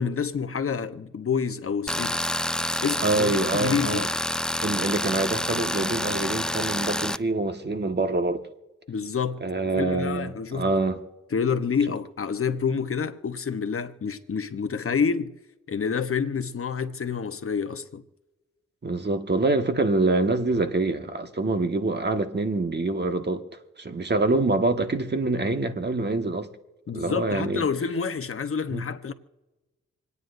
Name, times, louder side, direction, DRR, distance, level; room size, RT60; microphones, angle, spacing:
voice 1, 0.0-2.2 2.8-4.1 8.9-9.4 9.7-10.7 11.3-15.3 15.7-18.0 26.9-29.1, left 6 dB, 45° left, 0.9 m, -28 dB
Tools, 1.9-7.2, left 1 dB, ahead, 0.4 m, -28 dB
voice 2, 3.0-4.1 4.6-8.4 9.4-11.0 18.8-23.4 23.8-26.5 26.9-27.6 28.7-28.8, right 2 dB, 35° right, 1.5 m, -25 dB
27.5 x 9.5 x 2.6 m
supercardioid pair, 45°, 31 cm